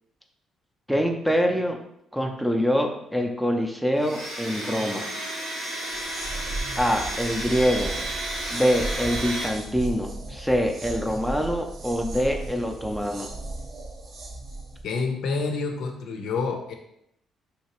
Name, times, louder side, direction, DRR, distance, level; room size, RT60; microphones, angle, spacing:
voice 1, 0.9-1.8 2.1-5.1 6.8-7.9 8.5-13.3, equal, ahead, 3 dB, 0.4 m, -25 dB
Domestic sounds home sounds, 4.0-9.5, right 1 dB, 80° right, 1.3 m, -32 dB
sound 1, 5.8-14.8, right 2 dB, 55° right, 0.6 m, -36 dB
voice 2, 14.8-16.7, left 4 dB, 80° left, 3 dB, 0.5 m, -28 dB
3.2 x 2.8 x 2.9 m, 0.76 s
cardioid pair, 105°, 0 cm